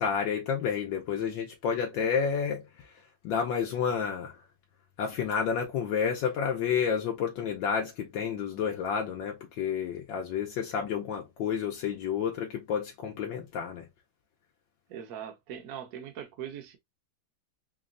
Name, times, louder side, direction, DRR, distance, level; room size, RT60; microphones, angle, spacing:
voice 1, 0.0-2.6 3.2-4.3 5.0-13.8, left 7 dB, 75° left, 1.4 m, -30 dB
voice 2, 14.9-16.8, right 9 dB, 55° right, 1.2 m, -41 dB
4.0 x 3.1 x 2.5 m
omnidirectional pair, 2.1 m